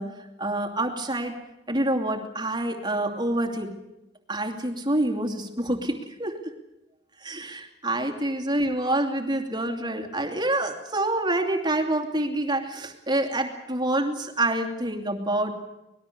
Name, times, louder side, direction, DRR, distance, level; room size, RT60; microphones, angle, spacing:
voice 1, 0.0-1.4 1.7-3.8 4.3-6.5 7.2-15.5, right 1 dB, 25° right, 3 dB, 2.7 m, -27 dB
25.5 x 20.5 x 6.8 m, 0.94 s
head